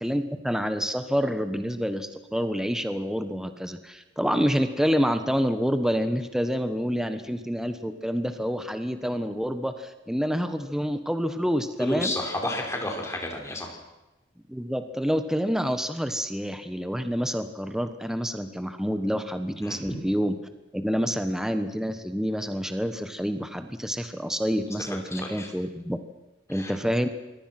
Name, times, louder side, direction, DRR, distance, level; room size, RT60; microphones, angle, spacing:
voice 1, 0.0-12.2 14.5-20.4 20.7-26.0 26.5-27.1, equal, 5° right, 8 dB, 1.3 m, -28 dB
voice 2, 11.8-13.7 19.6-19.8 25.1-25.5 26.5-26.7, left 1 dB, 15° left, 1 dB, 5.3 m, -31 dB
27.0 x 22.5 x 6.1 m, 1.0 s
head